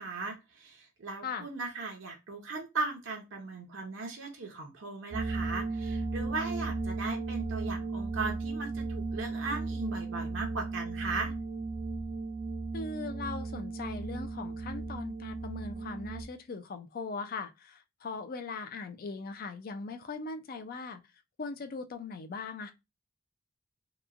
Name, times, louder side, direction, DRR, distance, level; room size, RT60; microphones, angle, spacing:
voice 1, 0.0-11.3, right 3 dB, 70° right, 0.7 m, -37 dB
sound 1, 5.1-16.2, right 3 dB, 30° right, 0.5 m, -35 dB
voice 2, 12.7-21.0 21.4-22.7, left 4 dB, 50° left, 0.4 m, -40 dB
2.9 x 2.2 x 2.4 m
head